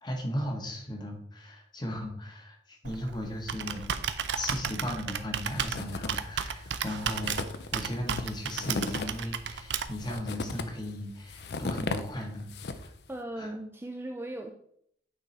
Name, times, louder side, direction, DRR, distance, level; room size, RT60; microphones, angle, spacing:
voice 1, 0.0-4.0 4.3-7.4 7.7-12.5 13.4-13.5, left 1 dB, 25° left, 2 dB, 1.2 m, -36 dB
Computer keyboard, 2.8-10.2, right 7 dB, 75° right, 0.5 m, -34 dB
sound 1, 5.4-6.3 6.6-6.7 7.0-13.0, left 3 dB, 65° left, 0.5 m, -37 dB
voice 2, 13.1-14.5, right 1 dB, 10° right, 4 dB, 0.4 m, -38 dB
8.9 x 3.9 x 4.1 m, 0.68 s
head